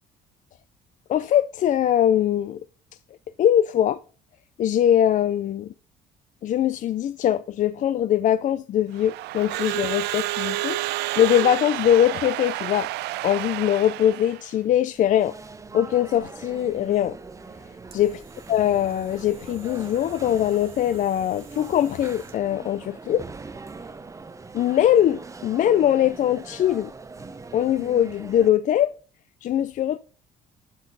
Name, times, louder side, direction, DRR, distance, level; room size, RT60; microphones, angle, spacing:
voice 1, 1.1-2.6 3.4-4.0 4.6-5.7 6.4-10.8 11.2-12.9 13.2-15.3 15.7-17.2 17.9-18.2 18.5-23.2 24.5-26.9 27.5-28.9 29.4-30.0, left 10 dB, 50° left, 0.4 m, -22 dB
Crowd / Alarm, 8.9-14.5, right 18 dB, 80° right, 0.4 m, -30 dB
sound 1, 14.9-28.5, right 4 dB, 20° right, 0.8 m, -42 dB
sound 2, 17.2-22.6, right 5 dB, 35° right, 1.9 m, -50 dB
12.0 x 5.8 x 4.0 m
cardioid pair, 110°, 17 cm